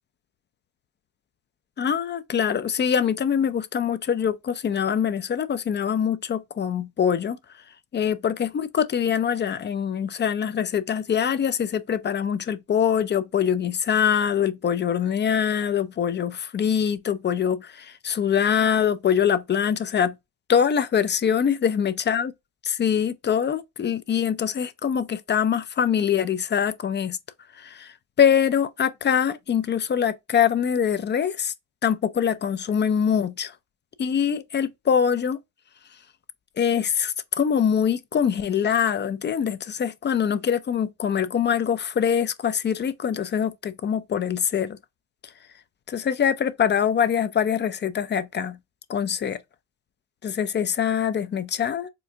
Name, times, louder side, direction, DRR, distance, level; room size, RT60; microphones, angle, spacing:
voice 1, 1.8-7.4 7.9-20.1 20.5-22.3 22.6-27.2 27.6-31.5 31.8-33.5 34.0-35.4 36.6-44.8 45.9-48.6 48.9-49.4 50.2-51.9, left 8 dB, 35° left, 0.4 m, -24 dB
4.5 x 2.5 x 2.4 m
supercardioid pair, 80°, 33 cm